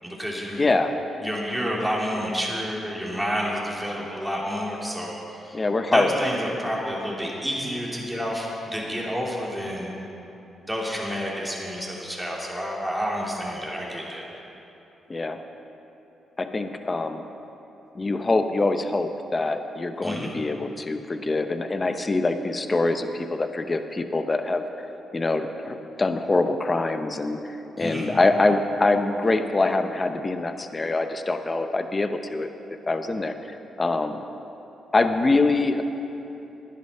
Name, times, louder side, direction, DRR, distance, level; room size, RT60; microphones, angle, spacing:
voice 1, 0.0-0.7 1.2-5.2 5.4-5.6 5.9-9.9 10.6-14.3 20.0-20.3 27.8-28.1, equal, ahead, -4 dB, 3.0 m, -29 dB
voice 2, 0.6-1.0 5.5-6.1 15.1-15.4 16.4-17.2 17.9-24.6 25.1-33.3 33.8-34.2 34.9-35.8, left 2 dB, 30° left, 8 dB, 0.8 m, -24 dB
11.5 x 10.5 x 5.6 m, 3.0 s
cardioid pair, 65°, 0 cm